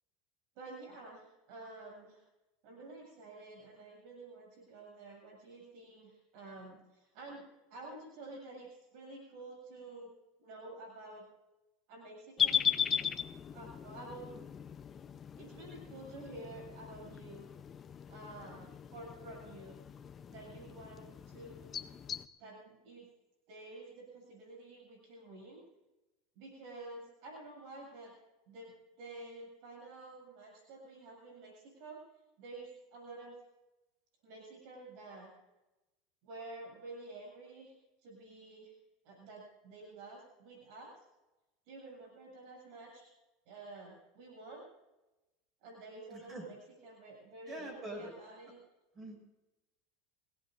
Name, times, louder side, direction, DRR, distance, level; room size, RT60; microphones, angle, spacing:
voice 1, 0.5-2.2 2.6-7.4 7.7-10.1 10.4-11.3 11.9-12.7 13.5-14.3 15.4-17.5 18.1-19.8 20.3-22.0 22.4-23.1 23.5-25.6 26.4-28.2 28.5-32.0 32.4-33.4 34.2-35.3 36.2-37.8 38.0-38.7 39.0-41.0 41.7-43.1 43.5-44.7 45.6-48.6, right 2 dB, 65° right, 0 dB, 7.6 m, -50 dB
sound 1, 12.4-22.3, left 8 dB, 30° left, 0.8 m, -38 dB
voice 2, 46.1-46.4 47.5-48.1 48.9-49.2, right 1 dB, 30° right, 2 dB, 6.9 m, -44 dB
26.5 x 17.5 x 2.7 m, 1.0 s
supercardioid pair, 115°, 0 cm